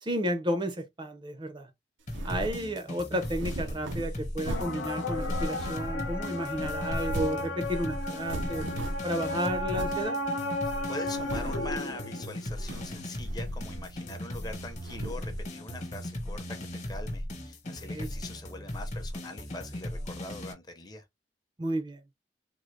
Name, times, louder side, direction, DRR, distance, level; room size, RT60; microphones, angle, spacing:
voice 1, 0.0-1.7 2.2-8.7 9.0-10.2 17.7-18.1 21.6-22.0, right 1 dB, 25° right, 0.5 m, -32 dB
sound 1, 2.1-20.5, left 1 dB, 40° left, 1.1 m, -38 dB
sound 2, 2.1-2.6 3.2-4.8 5.2-6.1 6.5-7.5 7.7-7.8 8.1-9.1 9.7-10.0 10.5-10.6 11.0-11.7 12.5-13.0 13.2-14.1 14.5-15.3, right 1 dB, 85° right, 0.6 m, -38 dB
sound 3, 4.5-12.6, left 2 dB, 85° left, 0.8 m, -34 dB
voice 2, 10.9-16.6 16.9-21.0, left 2 dB, 20° left, 0.7 m, -42 dB
3.7 x 2.0 x 3.2 m
head